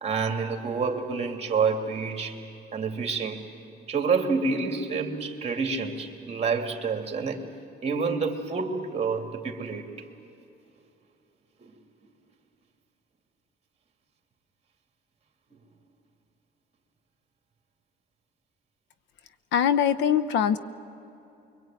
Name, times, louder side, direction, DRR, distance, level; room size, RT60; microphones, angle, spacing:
voice 1, 0.0-2.4 2.7-3.5 3.9-7.5 7.8-9.9 11.6-11.7 20.0-20.1, right 5 dB, 35° right, 4 dB, 2.7 m, -28 dB
voice 2, 19.5-20.6, left 8 dB, 90° left, 14 dB, 0.9 m, -22 dB
25.0 x 23.0 x 9.2 m, 2.9 s
cardioid pair, 120°, 18 cm